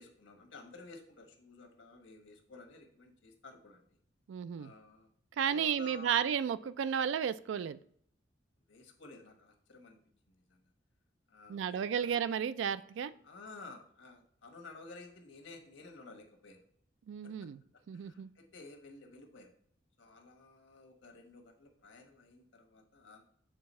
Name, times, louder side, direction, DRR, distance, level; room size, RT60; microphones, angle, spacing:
voice 1, 0.0-3.9 4.6-5.1 5.5-6.2 8.7-10.0 10.3-10.6 11.3-12.2 13.0-16.6 17.2-17.3 17.9-19.5 20.0-23.2, left 3 dB, 85° left, 4 dB, 1.1 m, -53 dB
voice 2, 4.3-4.7 5.4-7.8 11.5-13.1 17.1-17.6 17.9-18.3, right 8 dB, 75° right, 15 dB, 0.3 m, -33 dB
6.6 x 3.4 x 4.2 m, 0.64 s
head